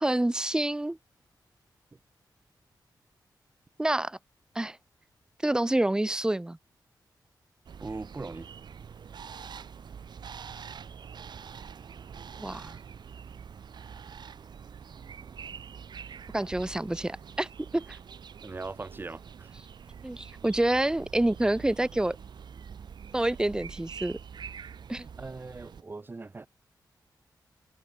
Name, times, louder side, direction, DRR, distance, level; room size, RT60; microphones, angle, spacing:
voice 1, 0.0-1.0 3.8-4.2 4.6-4.8 5.4-6.6 12.4-12.8 16.3-17.5 17.7-17.9 20.0-22.2 23.1-24.2 24.9-25.1, right 1 dB, 10° right, 0.6 m, -27 dB
sound 1, 7.7-25.8, right 7 dB, 70° right, 3.7 m, -45 dB
voice 2, 7.8-8.5 18.4-19.6 25.2-26.5, right 3 dB, 25° right, 4.0 m, -40 dB
wide cardioid pair, 155°, 8 cm